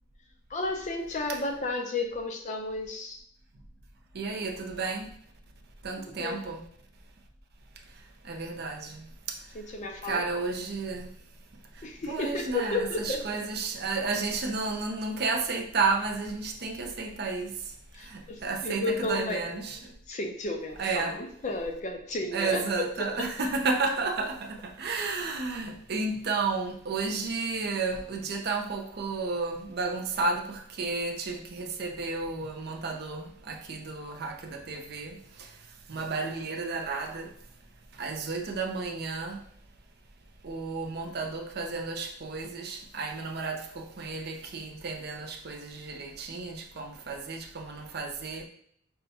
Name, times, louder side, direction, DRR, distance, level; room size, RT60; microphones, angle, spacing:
voice 1, 0.5-3.2 6.2-6.4 9.5-10.2 11.8-13.3 17.9-19.5 20.1-21.1 21.4-22.9, left 2 dB, 35° left, 0.5 m, -32 dB
voice 2, 4.1-5.1 5.8-6.7 8.2-9.5 10.0-11.1 11.7-19.9 20.8-21.2 22.3-37.3 37.9-39.4 40.4-48.4, right 4 dB, 50° right, 0.5 m, -32 dB
5.5 x 2.2 x 2.7 m
head